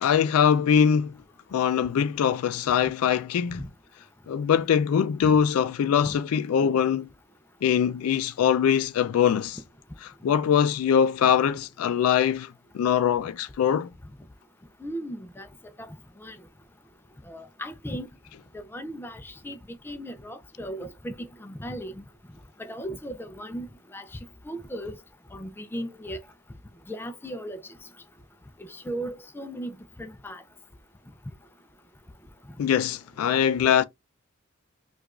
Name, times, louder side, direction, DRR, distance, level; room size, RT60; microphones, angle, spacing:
voice 1, 0.0-1.1 1.5-3.7 4.3-7.1 7.6-9.6 10.2-12.5 12.7-13.9 32.6-33.8, left 8 dB, 85° left, 0.3 m, -22 dB
voice 2, 14.8-15.5 15.8-15.9 16.2-16.4 17.3-18.1 18.5-19.6 19.8-21.1 21.4-22.0 22.6-23.7 23.9-24.0 24.5-25.0 25.3-26.2 26.9-27.6 28.7-30.4, equal, 10° left, 0.3 m, -36 dB
4.7 x 2.3 x 2.3 m
head